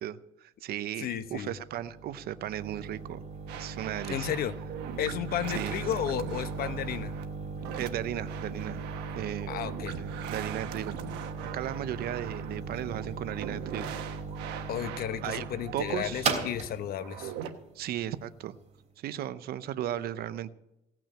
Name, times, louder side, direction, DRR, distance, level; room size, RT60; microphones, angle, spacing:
voice 1, 0.0-3.2 3.5-4.3 5.5-5.8 7.7-8.9 9.1-9.5 10.0-11.0 11.5-13.9 15.2-15.5 15.7-16.3 17.7-18.6 19.0-20.5, right 12 dB, 65° right, 14 dB, 0.7 m, -35 dB
voice 2, 1.0-1.5 4.1-4.5 5.0-7.1 9.5-10.0 14.7-17.3, left 10 dB, 60° left, 12 dB, 0.9 m, -33 dB
sound 1, 1.2-18.8, right 4 dB, 40° right, 3.2 m, -38 dB
sound 2, 3.5-17.5, right 9 dB, 90° right, 1.3 m, -42 dB
17.5 x 6.1 x 8.9 m, 0.91 s
cardioid pair, 110°, 17 cm